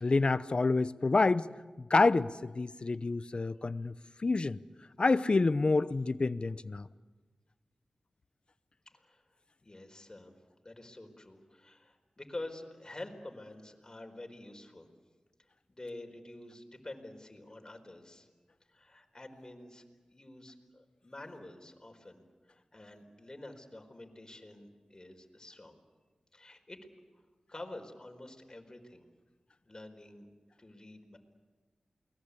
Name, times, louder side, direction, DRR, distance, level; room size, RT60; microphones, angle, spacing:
voice 1, 0.0-1.5 1.8-3.9 4.2-4.6 5.0-6.9, left 3 dB, 50° left, 0.8 m, -28 dB
voice 2, 8.9-9.2 9.6-10.3 10.6-14.9 15.7-18.3 18.7-19.8 20.1-25.8 26.3-26.9 27.5-29.1 29.6-30.3 30.6-31.2, left 2 dB, 30° left, 4.6 m, -48 dB
29.0 x 21.0 x 8.5 m
cardioid pair, 50°, 2 cm